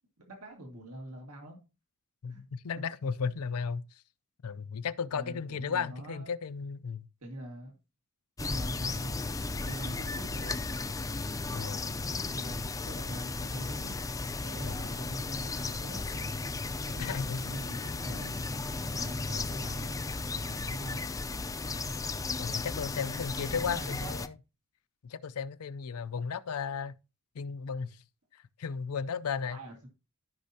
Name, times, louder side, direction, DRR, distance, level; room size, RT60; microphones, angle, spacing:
voice 1, 0.3-1.6 2.3-2.4 5.1-6.3 7.2-7.8 8.4-10.7 12.0-14.0 14.4-16.4 16.9-20.0 20.3-21.1 21.8-22.0 23.4-24.1 29.5-29.9, right 1 dB, 80° right, 1.9 m, -44 dB
voice 2, 2.2-3.8 4.4-7.1 11.5-11.9 14.6-14.8 17.0-17.6 22.4-24.3 25.0-27.0 27.4-28.0 28.6-29.6, left 6 dB, 80° left, 0.5 m, -35 dB
sound 1, 8.4-24.3, left 3 dB, 15° left, 0.4 m, -35 dB
13.5 x 5.4 x 2.8 m
head